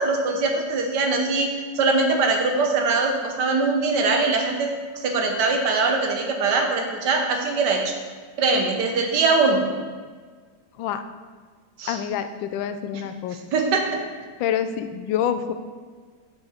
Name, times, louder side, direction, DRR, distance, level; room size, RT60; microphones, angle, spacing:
voice 1, 0.0-7.9 8.4-9.7 11.8-12.0 12.9-13.0 13.5-14.0, right 3 dB, 65° right, 3 dB, 1.5 m, -22 dB
voice 2, 11.9-13.4 14.4-15.5, left 9 dB, 90° left, 10 dB, 1.3 m, -26 dB
7.1 x 6.4 x 4.3 m, 1.5 s
omnidirectional pair, 2.0 m